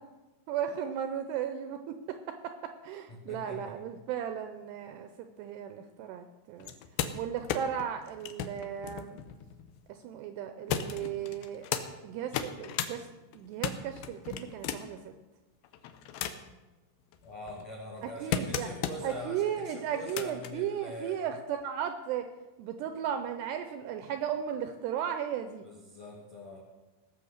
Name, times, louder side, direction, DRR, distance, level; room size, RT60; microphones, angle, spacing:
voice 1, 0.5-6.7 7.1-9.2 9.9-11.7 12.0-13.1 13.4-15.0 18.0-18.7 19.0-22.3 22.6-25.6, right 9 dB, 85° right, 8 dB, 2.5 m, -35 dB
voice 2, 3.1-3.7 17.2-21.2 25.6-26.6, left 2 dB, 70° left, -2 dB, 1.6 m, -43 dB
sound 1, 6.6-9.9 10.7-11.9 12.2-12.9 13.3-15.0 15.6-16.6 17.1-19.2 19.9-20.5 21.6-21.7, left 9 dB, 85° left, 2.1 m, -36 dB
18.5 x 7.0 x 6.5 m, 1.1 s
omnidirectional pair, 5.5 m